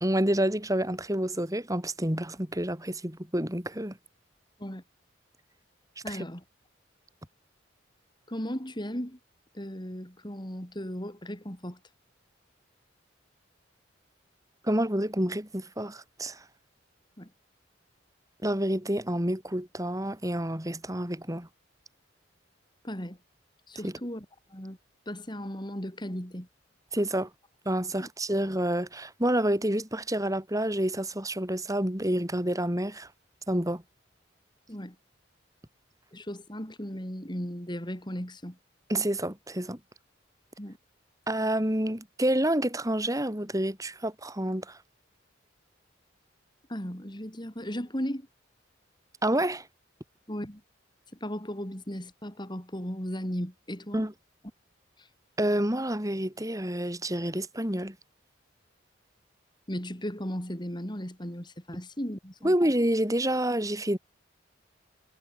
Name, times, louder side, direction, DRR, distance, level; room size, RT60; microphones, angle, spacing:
voice 1, 0.0-4.0 6.1-6.2 14.6-16.4 18.4-21.5 23.8-23.9 26.9-27.3 27.7-33.1 33.5-33.8 38.9-39.8 41.3-44.8 49.2-49.6 53.9-54.1 55.4-58.0 62.4-64.0, right 1 dB, 15° right, 3.8 m, -28 dB
voice 2, 6.0-6.4 8.3-9.2 9.5-11.8 17.2-17.3 22.8-23.2 23.7-24.8 25.1-26.5 28.0-28.1 34.7-35.0 36.1-38.6 40.6-40.8 46.7-48.3 50.3-50.6 51.2-54.1 55.0-55.1 59.7-62.5, equal, 25° left, 5.6 m, -36 dB
head